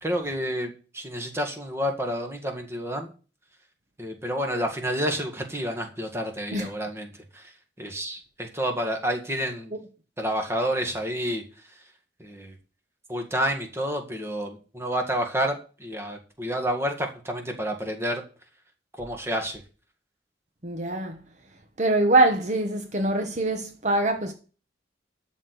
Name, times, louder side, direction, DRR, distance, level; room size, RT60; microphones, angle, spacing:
voice 1, 0.0-3.1 4.0-9.7 10.2-11.4 11.7-11.8 12.2-12.6 13.1-18.2 19.0-19.6, equal, 15° right, 1.8 m, -29 dB
voice 2, 20.6-21.2 21.8-24.3, right 2 dB, 40° right, 1.1 m, -23 dB
12.5 x 4.4 x 8.1 m
head